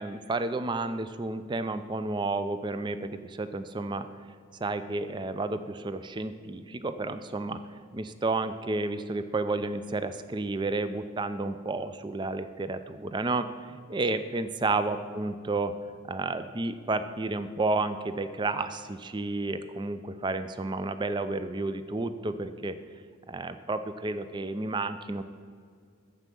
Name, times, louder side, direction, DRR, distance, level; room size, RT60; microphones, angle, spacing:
voice 1, 0.0-4.1 4.6-7.6 7.9-15.7 16.1-22.8 23.3-25.2, right 3 dB, 20° right, 11 dB, 0.4 m, -31 dB
9.5 x 7.3 x 6.8 m, 2.1 s
head